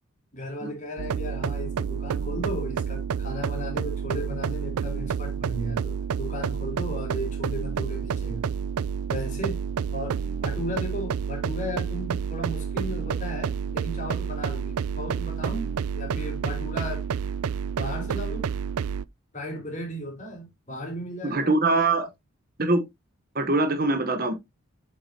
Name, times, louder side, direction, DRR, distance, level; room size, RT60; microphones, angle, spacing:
voice 1, 0.3-8.5 9.1-9.6 9.9-17.0 17.7-18.5 19.3-21.7, equal, 35° left, 3.9 m, -35 dB
sound 1, 1.0-19.0, right 6 dB, 85° right, 0.4 m, -29 dB
voice 2, 21.2-22.1 22.6-22.8 23.3-24.3, right 2 dB, 40° right, 1.0 m, -23 dB
8.2 x 6.5 x 2.8 m
head